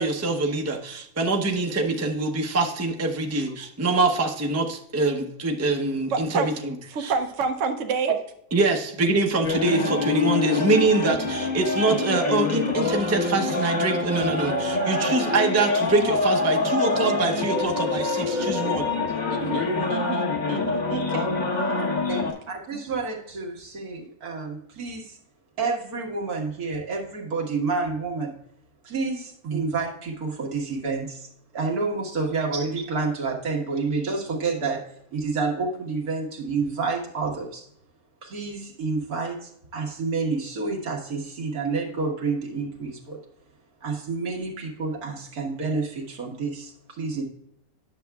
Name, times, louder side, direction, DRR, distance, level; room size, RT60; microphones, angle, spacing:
voice 1, 0.0-6.5 7.0-7.1 8.5-18.9, right 3 dB, 15° right, 3 dB, 0.6 m, -24 dB
voice 2, 6.1-6.6 6.9-8.2 19.3-21.9 22.7-22.8, right 5 dB, 65° right, 5 dB, 1.0 m, -29 dB
sound 1, 9.4-22.3, left 3 dB, 35° left, 1.1 m, -25 dB
voice 3, 22.1-25.2 25.6-28.3 28.8-31.3 31.5-34.8 35.1-37.7 38.2-43.2 43.8-47.2, right 4 dB, 85° right, 0 dB, 2.0 m, -29 dB
10.0 x 7.0 x 2.3 m, 0.71 s
omnidirectional pair, 1.5 m